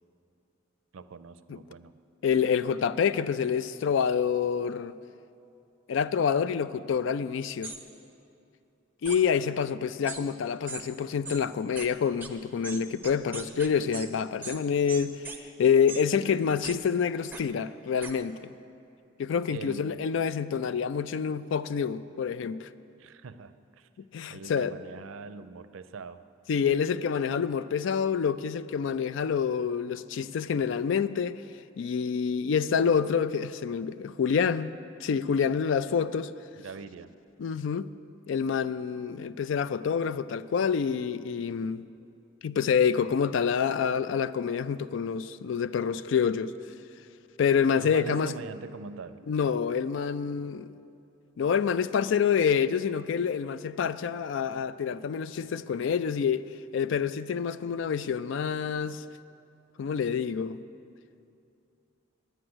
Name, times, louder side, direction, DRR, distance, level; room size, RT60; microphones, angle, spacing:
voice 1, 0.9-2.0 19.5-20.0 23.0-23.9 24.3-26.2 36.6-37.1 47.7-49.2, right 4 dB, 80° right, 0.5 m, -43 dB
voice 2, 2.2-4.9 5.9-7.7 9.0-18.5 19.2-22.7 24.0-24.7 26.5-31.4 31.8-34.7 35.0-36.3 37.4-37.9 38.3-41.8 42.4-46.5 47.4-48.3 49.3-50.7 51.4-59.0 59.8-60.6, left 7 dB, 70° left, 0.3 m, -27 dB
sound 1, 7.6-7.8 9.0-9.2 10.1-10.2 10.7-10.8 11.2-11.4 11.8-11.9 12.2-12.3 12.6-14.1 14.4-14.6 14.9-15.4 15.9-16.0 16.6-16.8 17.3-17.4 18.0-18.1, right 4 dB, 10° right, 0.7 m, -38 dB
10.0 x 9.9 x 7.8 m
head